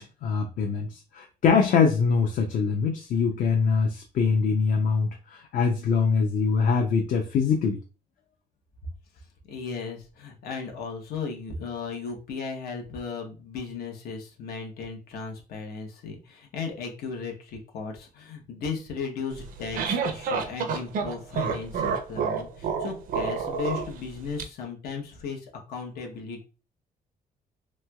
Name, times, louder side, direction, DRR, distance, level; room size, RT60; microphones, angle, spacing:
voice 1, 0.0-7.8, left 5 dB, 60° left, 2 dB, 0.5 m, -23 dB
voice 2, 9.5-26.4, left 5 dB, 90° left, 2 dB, 0.9 m, -36 dB
sound 1, 19.3-24.4, right 5 dB, 65° right, 0.5 m, -29 dB
3.1 x 3.0 x 2.2 m, 0.33 s
cardioid pair, 175°, 16 cm